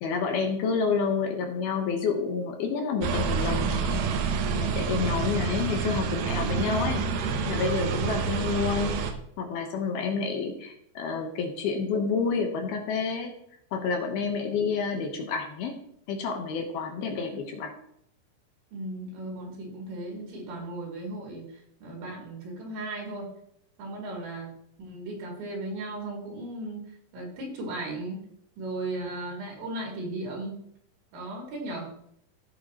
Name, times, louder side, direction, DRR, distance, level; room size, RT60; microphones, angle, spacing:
voice 1, 0.0-4.0 4.5-7.1 7.5-9.1 9.4-13.3 13.7-15.8 16.1-17.7, left 5 dB, 70° left, 3 dB, 2.7 m, -29 dB
sound 1, 3.0-9.1, right 5 dB, 75° right, 2.4 m, -28 dB
voice 2, 8.0-8.5 18.7-23.3 23.8-24.5 24.8-28.2 28.6-30.6 31.1-31.9, right 2 dB, 90° right, -2 dB, 5.3 m, -36 dB
15.5 x 7.4 x 3.0 m, 0.72 s
omnidirectional pair, 5.1 m